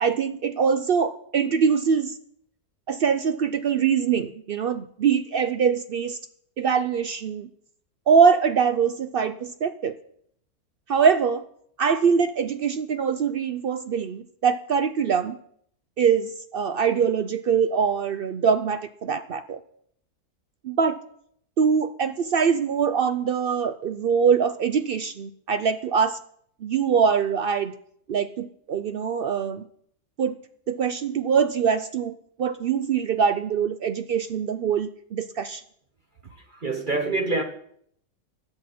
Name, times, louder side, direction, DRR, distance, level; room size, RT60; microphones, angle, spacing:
voice 1, 0.0-2.1 2.9-6.2 6.6-7.5 8.1-9.9 10.9-11.4 11.8-15.4 16.0-19.6 20.6-21.0 21.6-26.2 26.6-27.7 28.1-29.6 30.2-30.4 30.7-32.1 32.4-35.6, right 6 dB, 80° right, 11 dB, 0.5 m, -23 dB
voice 2, 36.2-37.4, right 2 dB, 40° right, 4 dB, 1.0 m, -27 dB
20.5 x 7.8 x 4.2 m, 0.67 s
omnidirectional pair, 1.6 m